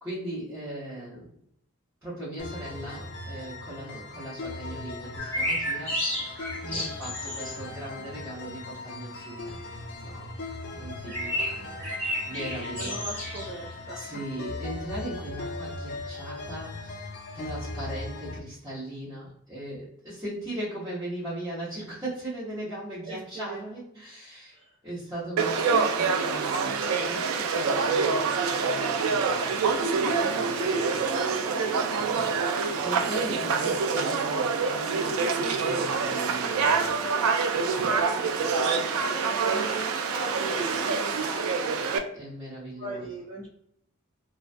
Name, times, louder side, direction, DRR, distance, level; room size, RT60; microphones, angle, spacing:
voice 1, 0.0-1.3 2.0-9.6 10.0-10.3 10.7-11.5 12.2-13.0 13.9-24.6 24.8-31.1 32.0-35.2 35.5-36.8 42.1-43.1, right 1 dB, 15° right, -12 dB, 0.9 m, -39 dB
sound 1, 2.4-18.4, left 2 dB, 50° left, 0.4 m, -39 dB
sound 2, 5.2-7.9 11.1-13.7 14.0-14.1, equal, 10° left, 1.1 m, -32 dB
voice 2, 11.0-12.0 12.8-14.2 23.0-23.6 24.5-24.8 31.4-31.7 35.7-36.2 36.6-41.7 42.8-43.5, right 2 dB, 40° right, -9 dB, 0.8 m, -40 dB
Conversation / Crowd, 25.4-42.0, right 5 dB, 75° right, 0.3 m, -26 dB
2.3 x 2.2 x 2.5 m, 0.70 s
head